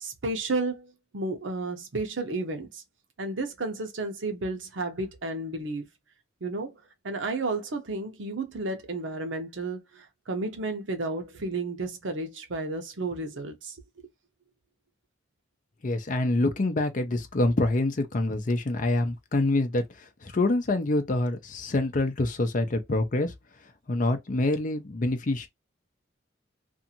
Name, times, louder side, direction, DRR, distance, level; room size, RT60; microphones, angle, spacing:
voice 1, 0.0-2.8 3.2-5.9 6.4-6.7 7.0-13.8, right 2 dB, 75° right, 0.8 m, -32 dB
voice 2, 15.8-23.3 23.9-25.5, left 2 dB, 45° left, 0.6 m, -26 dB
2.6 x 2.4 x 2.7 m
head